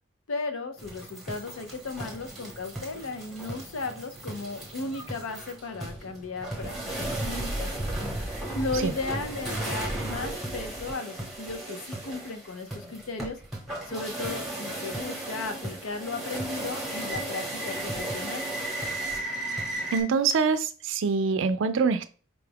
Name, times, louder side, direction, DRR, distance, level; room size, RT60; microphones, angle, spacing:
voice 1, 0.3-7.7 8.5-13.4 13.9-18.4, left 3 dB, 85° left, 0.6 m, -35 dB
sound 1, 0.8-20.0, right 1 dB, ahead, 0.9 m, -35 dB
voice 2, 19.9-22.1, right 5 dB, 65° right, 0.4 m, -25 dB
5.0 x 2.3 x 3.4 m
head